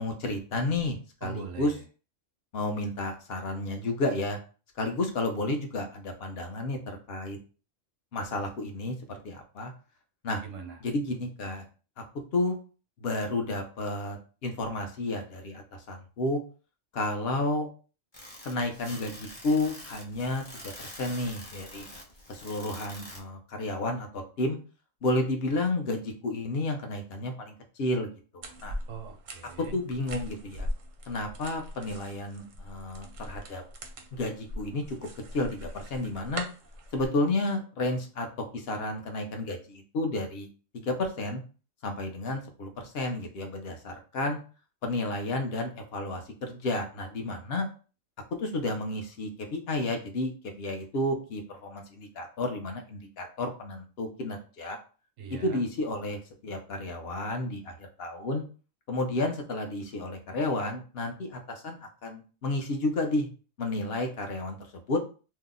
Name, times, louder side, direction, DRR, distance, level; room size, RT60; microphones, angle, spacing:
voice 1, 0.0-1.7 2.5-4.4 4.8-7.4 8.1-9.7 10.2-10.4 10.8-11.6 12.3-12.6 13.0-16.4 16.9-17.7 18.4-21.9 22.3-24.6 25.0-28.1 28.3-28.8 29.6-30.7 31.1-33.6 34.1-35.0 35.3-36.5 36.9-38.3 38.5-40.5 40.7-41.4 41.8-44.4 44.8-47.7 48.4-54.8 55.4-58.4 58.9-63.3 63.6-64.6 64.9-65.0, left 2 dB, 60° left, 4 dB, 0.8 m, -31 dB
voice 2, 1.2-1.8 10.4-10.8 28.9-29.8 55.2-55.6, right 6 dB, 90° right, 5 dB, 1.0 m, -41 dB
sound 1, 18.1-23.2, left 1 dB, 30° left, 0.6 m, -45 dB
sound 2, 28.4-37.1, equal, 55° right, 0.5 m, -41 dB
2.7 x 2.0 x 3.6 m, 0.36 s
omnidirectional pair, 1.3 m